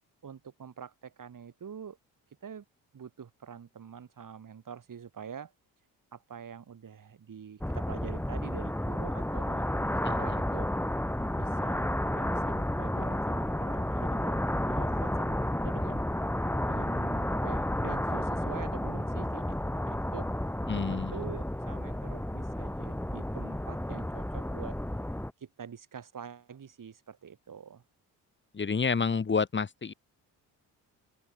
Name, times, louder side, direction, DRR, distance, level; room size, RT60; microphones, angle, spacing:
voice 1, 0.2-2.0 2.4-2.6 2.9-5.5 6.1-10.7 11.4-14.4 14.7-15.4 15.6-16.0 16.7-20.3 20.8-24.8 25.4-27.8, right 7 dB, 50° right, 6.5 m, -46 dB
sound 1, 7.6-25.3, left 1 dB, 5° left, 2.5 m, -31 dB
voice 2, 20.7-21.1 28.5-29.9, left 5 dB, 30° left, 1.3 m, -29 dB
open air
supercardioid pair, 65°, 39 cm